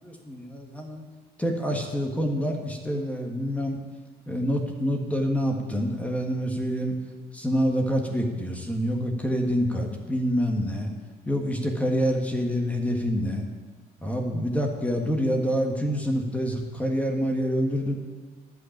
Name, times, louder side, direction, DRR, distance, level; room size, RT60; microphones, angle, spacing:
voice 1, 0.3-1.1 1.4-3.8 4.3-7.0 7.3-10.9 11.3-13.4 14.0-17.9, equal, 10° left, 2 dB, 1.6 m, -26 dB
11.5 x 5.9 x 8.7 m, 1.5 s
cardioid pair, 110°, 17 cm